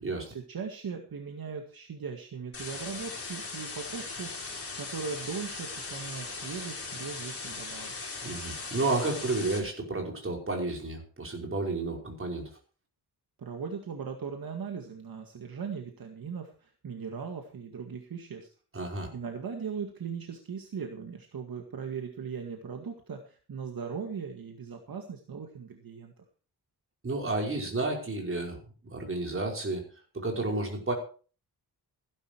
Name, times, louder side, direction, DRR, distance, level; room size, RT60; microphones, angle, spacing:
voice 1, 0.3-4.4 4.8-7.9 13.4-18.5 19.1-26.1, right 6 dB, 60° right, 3 dB, 2.0 m, -39 dB
sound 1, 2.5-9.6, left 3 dB, 35° left, 4.6 m, -39 dB
voice 2, 8.2-12.5 18.7-19.1 27.0-28.6 28.9-29.8 30.1-30.9, right 2 dB, 35° right, 1 dB, 5.2 m, -31 dB
16.0 x 11.0 x 4.6 m, 0.39 s
wide cardioid pair, 130°, 39 cm